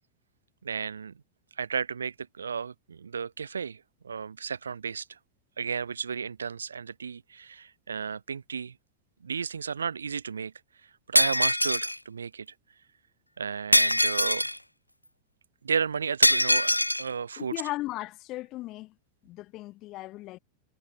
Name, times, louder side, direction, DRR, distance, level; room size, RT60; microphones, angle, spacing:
voice 1, 0.6-1.1 1.6-5.2 5.6-8.8 9.2-10.5 11.1-12.5 13.4-14.5 15.6-16.7 17.0-17.5, right 6 dB, 70° right, 0.9 m, -33 dB
Shatter, 11.1-12.0 13.7-14.6 16.2-17.0, left 1 dB, 90° left, 0.8 m, -22 dB
voice 2, 17.4-18.9 19.2-20.4, left 18 dB, 35° left, 2.0 m, -36 dB
figure-of-eight pair, 90°, 0 cm